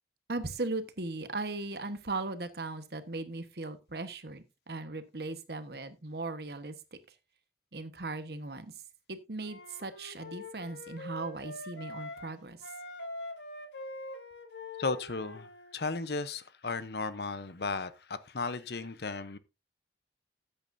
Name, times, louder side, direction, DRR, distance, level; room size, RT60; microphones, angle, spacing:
voice 1, 0.3-6.7 7.7-8.7 9.1-12.7, right 3 dB, 65° right, 1.2 m, -38 dB
Wind instrument woodwind instrument, 9.4-12.3 12.6-15.8, left 2 dB, 80° left, 1.9 m, -44 dB
voice 2, 14.8-19.4, left 3 dB, 65° left, 0.8 m, -35 dB
13.5 x 8.9 x 2.6 m
head